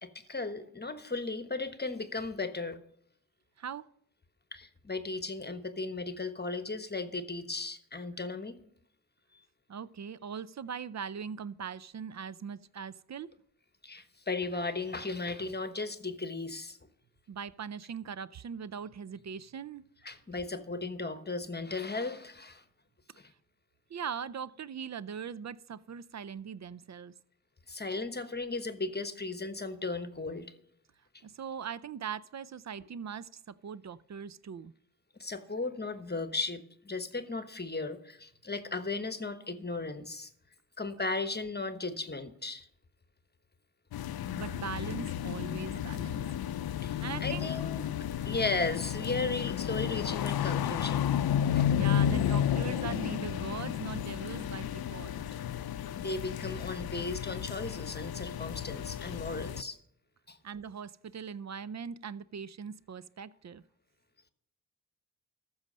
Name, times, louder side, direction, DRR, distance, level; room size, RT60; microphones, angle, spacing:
voice 1, 0.0-2.8 4.5-8.6 13.8-16.8 20.0-22.6 23.2-23.3 27.7-30.5 35.2-40.3 40.8-42.7 46.8-47.9 48.2-51.1 51.5-51.8 55.9-59.8 60.3-60.4, left 3 dB, 25° left, 1.1 m, -36 dB
voice 2, 9.7-13.3 17.3-19.8 23.9-27.1 31.2-34.7 44.2-46.2 47.0-47.5 51.7-55.2 60.4-63.6, right 7 dB, 45° right, 0.5 m, -40 dB
sound 1, 43.9-59.6, left 10 dB, 75° left, 0.5 m, -32 dB
13.5 x 6.4 x 5.4 m
cardioid pair, 45°, 37 cm